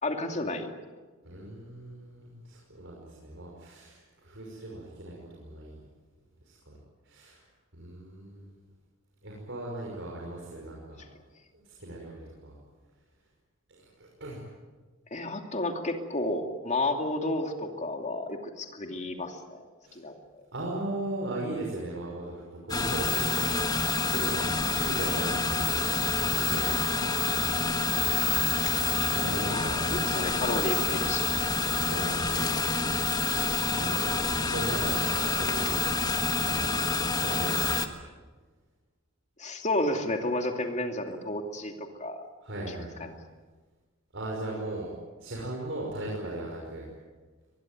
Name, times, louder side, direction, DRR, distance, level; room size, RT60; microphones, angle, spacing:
voice 1, 0.0-0.7 15.1-19.6 19.9-20.2 27.9-28.0 29.5-31.5 39.4-42.2 42.7-42.8 43.0-43.1, left 2 dB, 35° left, 4 dB, 2.6 m, -31 dB
voice 2, 1.2-5.8 6.5-6.7 7.1-7.4 7.7-8.5 9.2-11.0 11.5-12.5 13.8-14.4 19.9-20.0 20.5-26.8 27.3-27.4 28.7-29.9 31.8-32.5 33.8-34.2 34.5-36.1 36.4-36.8 37.2-37.5 42.4-43.1 44.1-44.9 45.2-46.9, right 1 dB, 60° right, -2 dB, 5.8 m, -38 dB
sound 1, 22.7-37.9, left 4 dB, 20° left, 1.5 m, -27 dB
24.0 x 21.0 x 9.2 m, 1.3 s
head